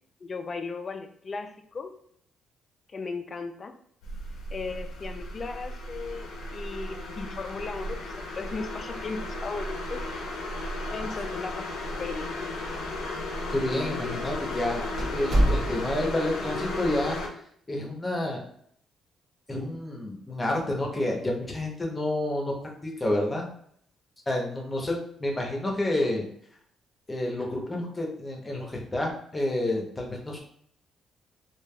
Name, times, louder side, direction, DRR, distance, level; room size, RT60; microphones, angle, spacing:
voice 1, 0.2-1.9 2.9-3.7 4.5-10.0 10.9-11.7 12.0-12.3, left 4 dB, 40° left, 7 dB, 0.4 m, -36 dB
sound 1, 4.0-17.3, left 2 dB, 85° left, 0.6 m, -34 dB
sound 2, 11.1-11.7 12.0-12.1 12.8-12.9 13.7-13.9 14.3-14.4 15.0-16.1, right 1 dB, 60° right, 1.1 m, -26 dB
voice 2, 13.5-14.8 15.1-17.2 17.7-18.4 19.5-22.5 22.8-23.5 24.3-26.3 27.1-30.4, left 1 dB, 20° left, -1 dB, 0.8 m, -29 dB
3.2 x 2.4 x 2.3 m, 0.65 s
cardioid pair, 90°, 0 cm